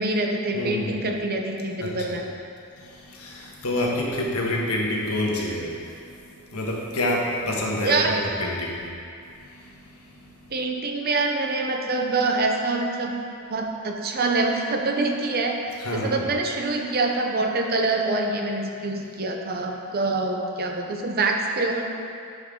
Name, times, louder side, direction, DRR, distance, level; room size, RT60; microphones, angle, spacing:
voice 1, 0.0-2.3 7.8-8.1 10.5-13.1 13.5-21.8, right 3 dB, 45° right, 2 dB, 0.7 m, -25 dB
voice 2, 0.5-1.0 1.8-2.2 2.8-8.9 9.4-10.5 15.8-16.3, left 1 dB, 80° left, -2 dB, 1.3 m, -28 dB
11.0 x 5.3 x 3.8 m, 2.4 s
head